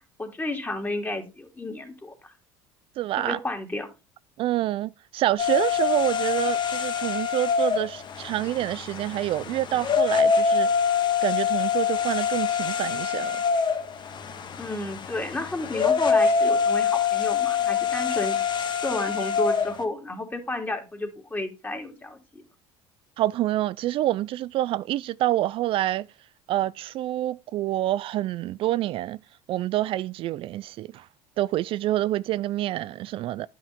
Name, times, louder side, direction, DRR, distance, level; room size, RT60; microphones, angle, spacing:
voice 1, 0.2-2.3 3.2-3.9 14.6-18.4 18.8-22.4, left 2 dB, 15° left, 3.1 m, -31 dB
voice 2, 3.0-3.4 4.4-10.9 11.2-13.4 23.2-26.1 26.5-29.2 29.5-31.1 31.4-33.5, right 14 dB, 55° right, 0.4 m, -27 dB
sound 1, 5.4-19.8, left 6 dB, 45° left, 1.6 m, -25 dB
10.5 x 5.9 x 4.5 m
hypercardioid pair, 80°, 11 cm